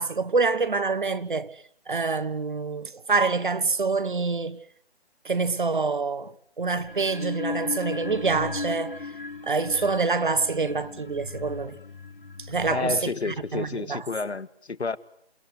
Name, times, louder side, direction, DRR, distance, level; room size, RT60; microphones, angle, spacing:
voice 1, 0.0-1.5 1.9-4.6 5.2-9.0 9.4-11.8 12.5-14.0, right 4 dB, 50° right, 1.5 m, -26 dB
sound 1, 6.8-13.7, left 4 dB, 55° left, 2.1 m, -37 dB
voice 2, 12.7-15.0, left 4 dB, 85° left, 1.6 m, -30 dB
29.0 x 19.5 x 9.7 m
figure-of-eight pair, 175°, 32 cm